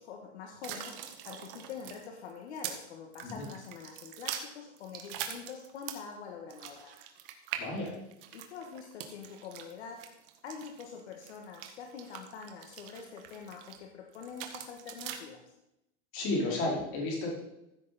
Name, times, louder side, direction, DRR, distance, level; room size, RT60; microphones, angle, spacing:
voice 1, 0.0-7.0 8.3-10.1 10.4-15.4, left 6 dB, 70° left, 2 dB, 1.8 m, -45 dB
sound 1, 0.6-2.8 3.1-6.1 6.5-13.8 14.1-15.2, right 10 dB, 50° right, 1.6 m, -43 dB
voice 2, 7.6-7.9 16.1-17.3, left 2 dB, 35° left, -3 dB, 4.7 m, -32 dB
15.0 x 7.8 x 4.3 m, 0.87 s
supercardioid pair, 155°, 35 cm